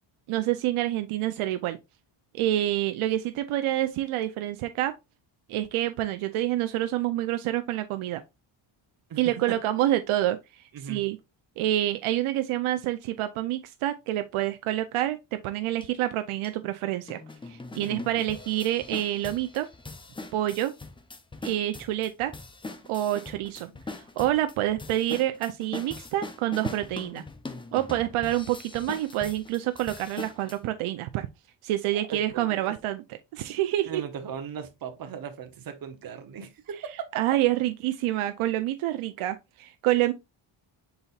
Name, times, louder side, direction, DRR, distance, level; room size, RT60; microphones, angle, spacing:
voice 1, 0.3-1.8 2.3-4.9 5.5-8.2 9.2-10.4 10.8-11.2 11.6-17.2 17.5-19.7 20.3-20.7 21.4-22.3 22.9-23.7 24.2-27.2 27.7-31.3 31.6-33.0 33.3-34.0 37.2-40.1, right 14 dB, 80° right, 0.6 m, -27 dB
voice 2, 10.7-11.0 17.7-18.0 23.6-23.7 31.9-32.7 33.8-37.2, right 7 dB, 45° right, 0.9 m, -38 dB
sound 1, 15.8-15.9 16.4-16.5 17.1-30.6, left 3 dB, 10° left, 0.3 m, -41 dB
5.5 x 4.0 x 2.3 m
cardioid pair, 125°, 50 cm